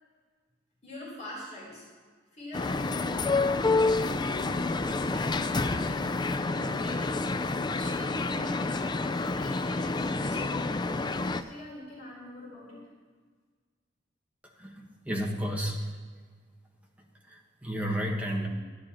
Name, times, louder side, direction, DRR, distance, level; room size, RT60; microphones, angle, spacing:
voice 1, 0.8-1.8 2.3-6.2 6.5-7.2 7.8-10.8 11.1-12.8, left 1 dB, 40° left, -6 dB, 4.2 m, -44 dB
sound 1, 2.5-11.4, left 3 dB, 25° left, 0.4 m, -28 dB
voice 2, 14.6-15.8 17.3-18.5, equal, 10° right, -1 dB, 1.5 m, -32 dB
13.0 x 11.0 x 4.4 m, 1.5 s
head